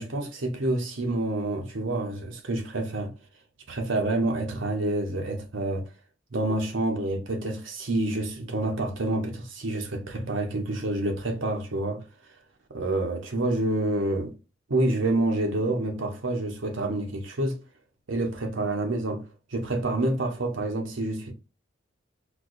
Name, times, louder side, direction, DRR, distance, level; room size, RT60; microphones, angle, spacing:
voice 1, 0.0-3.1 3.7-5.8 6.3-12.0 12.7-14.3 14.7-17.6 18.1-21.3, right 2 dB, 85° right, 0.9 m, -28 dB
4.4 x 2.3 x 2.5 m
head